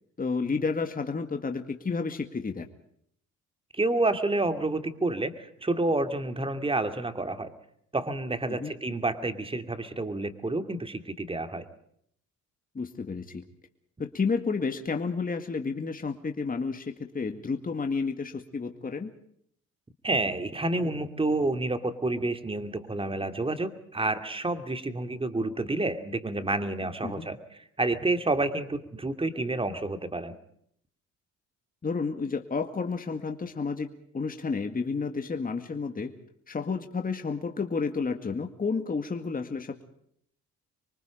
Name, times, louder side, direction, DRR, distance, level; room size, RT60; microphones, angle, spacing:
voice 1, 0.2-2.7 8.5-8.7 12.7-13.4 14.0-19.1 27.0-27.3 31.8-36.1 36.5-39.8, left 4 dB, 30° left, 6 dB, 2.1 m, -31 dB
voice 2, 3.7-7.5 7.9-11.6 20.0-27.4 27.8-30.3, right 2 dB, 20° right, 8 dB, 2.6 m, -29 dB
26.5 x 23.5 x 5.1 m, 0.68 s
cardioid pair, 90°, 30 cm